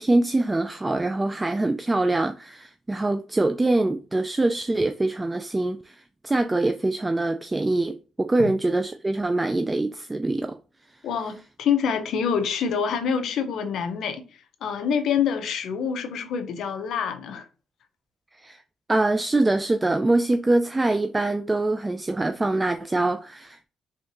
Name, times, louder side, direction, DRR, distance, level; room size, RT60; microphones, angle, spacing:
voice 1, 0.0-10.6 18.4-18.6 18.9-23.7, right 2 dB, 20° right, 0.3 m, -24 dB
voice 2, 11.0-14.2 14.6-17.5, left 7 dB, 70° left, 0.7 m, -26 dB
3.6 x 3.5 x 2.7 m
cardioid pair, 90°, 0 cm